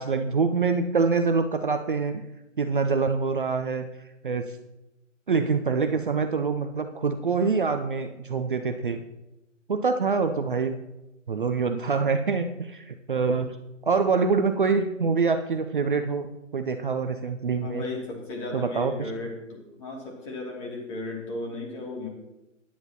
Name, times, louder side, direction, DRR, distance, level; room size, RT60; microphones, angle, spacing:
voice 1, 0.0-2.2 2.6-3.9 4.2-4.5 5.3-9.0 9.7-10.8 11.3-13.6 13.8-16.3 16.5-17.9 18.5-19.1, right 4 dB, 40° right, 7 dB, 0.6 m, -25 dB
voice 2, 17.6-22.1, left 2 dB, 25° left, -1 dB, 2.6 m, -35 dB
15.5 x 10.5 x 2.9 m, 0.95 s
figure-of-eight pair, 140°, 39 cm